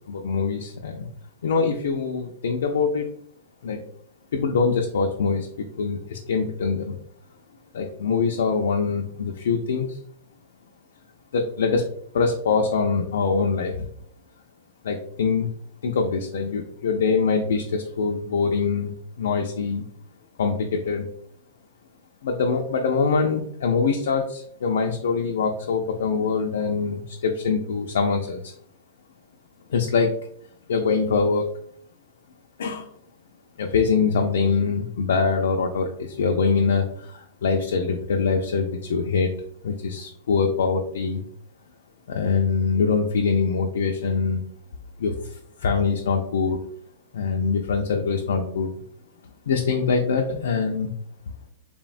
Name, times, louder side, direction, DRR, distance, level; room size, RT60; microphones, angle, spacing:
voice 1, 0.1-1.1 1.4-3.1 3.6-3.8 4.3-7.0 7.7-10.0 11.3-11.9 12.1-13.9 14.8-15.5 15.8-19.8 20.4-21.1 22.2-28.5 29.7-30.1 30.7-31.5 32.6-32.9 33.6-39.3 39.6-41.2 42.1-44.4 45.0-46.6 47.1-48.7 49.5-50.9, left 5 dB, 85° left, 2 dB, 0.3 m, -24 dB
3.3 x 2.1 x 2.4 m, 0.65 s
hypercardioid pair, 145°, 0 cm